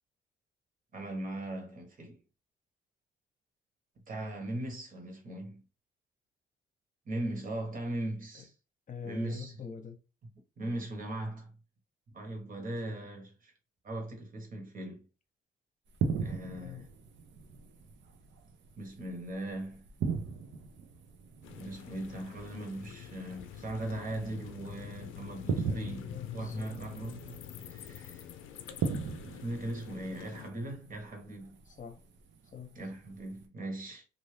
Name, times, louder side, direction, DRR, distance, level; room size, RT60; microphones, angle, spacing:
voice 1, 0.9-2.2 4.1-5.6 7.0-8.5 9.0-9.5 10.6-11.5 12.1-13.5 13.8-15.0 16.2-16.9 18.8-19.8 21.5-26.0 26.3-28.2 29.3-31.6 32.7-34.0, right 1 dB, 45° right, 1.3 m, -39 dB
voice 2, 8.9-10.0 16.6-16.9 25.6-26.7 31.7-32.0 32.4-32.8, left 6 dB, 40° left, 0.8 m, -44 dB
sound 1, 15.9-33.4, right 5 dB, 70° right, 0.7 m, -40 dB
sound 2, 21.4-30.5, left 10 dB, 85° left, 0.4 m, -47 dB
2.6 x 2.6 x 3.2 m
cardioid pair, 90°, 20 cm